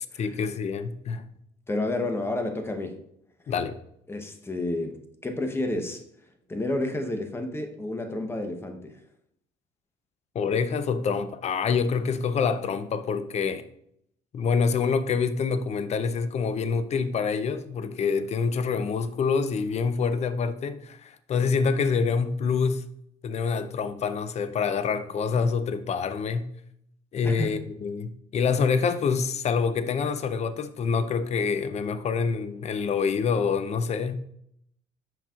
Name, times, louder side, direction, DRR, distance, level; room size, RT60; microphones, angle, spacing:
voice 1, 0.2-1.2 3.5-3.8 10.3-13.6 14.3-22.8 23.2-26.5 27.1-34.1, left 5 dB, 40° left, 0.5 m, -26 dB
voice 2, 1.7-3.0 4.1-6.0 6.5-9.0 27.2-27.6, left 2 dB, 15° left, 0.8 m, -30 dB
7.4 x 5.3 x 2.4 m
cardioid pair, 110°, 17 cm